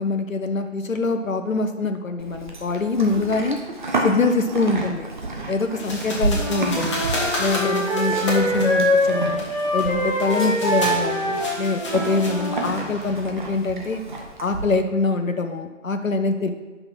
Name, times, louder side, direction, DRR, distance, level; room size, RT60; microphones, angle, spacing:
voice 1, 0.0-3.6 4.0-5.1 5.5-7.0 7.4-9.4 9.7-14.0 14.4-16.5, left 3 dB, 85° left, 7 dB, 0.7 m, -24 dB
Livestock farm animals working animals, 2.2-14.7, right 2 dB, 40° right, 0.9 m, -31 dB
sound 1, 5.8-13.1, left 1 dB, 25° left, 1.2 m, -32 dB
Wind instrument woodwind instrument, 6.3-12.6, equal, 5° left, 1.0 m, -24 dB
5.7 x 5.4 x 5.9 m, 1.3 s
figure-of-eight pair, 145°, 39 cm